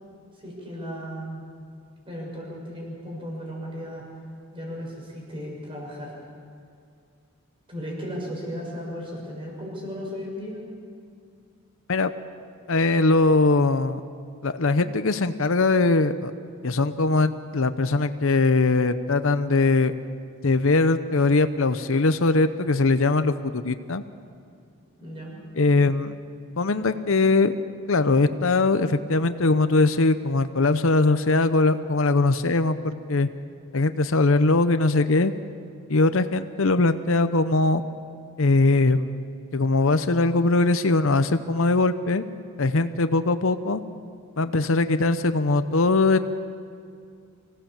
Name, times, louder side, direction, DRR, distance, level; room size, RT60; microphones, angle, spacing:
voice 1, 0.4-1.5 2.0-4.1 4.5-6.1 7.7-10.6 25.0-25.3, equal, 25° right, -2 dB, 6.4 m, -35 dB
voice 2, 12.7-14.0 14.4-16.3 16.6-19.9 20.4-24.0 25.6-26.2 26.6-27.5 27.9-33.3 33.7-35.3 35.9-37.8 38.4-39.2 39.5-42.2 42.6-43.8 44.4-46.2, left 3 dB, 65° left, 11 dB, 0.8 m, -21 dB
25.5 x 17.5 x 7.4 m, 2.4 s
head